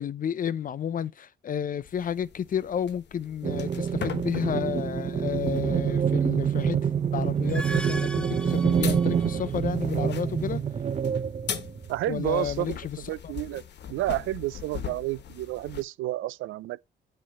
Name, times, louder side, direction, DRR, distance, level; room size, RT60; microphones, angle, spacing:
voice 1, 0.0-10.6 12.1-13.0 13.2-13.3, left 8 dB, 45° left, 0.6 m, -31 dB
sound 1, 1.8-15.8, left 8 dB, 60° left, 1.3 m, -41 dB
sound 2, 3.4-12.2, right 7 dB, 35° right, 0.6 m, -26 dB
sound 3, 7.3-9.6, equal, 5° left, 0.7 m, -39 dB
voice 2, 11.9-13.6 13.9-16.8, right 16 dB, 85° right, 0.5 m, -30 dB
8.8 x 3.3 x 6.7 m
cardioid pair, 90°, 20 cm